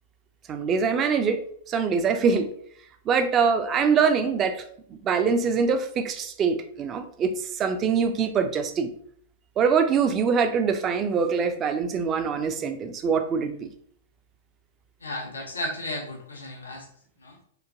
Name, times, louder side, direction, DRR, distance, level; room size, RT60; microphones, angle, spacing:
voice 1, 0.5-1.4 1.7-2.5 3.1-4.6 4.9-8.9 9.6-13.7, right 6 dB, 30° right, 8 dB, 0.4 m, -24 dB
voice 2, 15.0-16.9 17.2-17.4, left 2 dB, 90° left, 0 dB, 0.6 m, -35 dB
3.0 x 2.2 x 2.5 m, 0.63 s
hypercardioid pair, 110°, 0 cm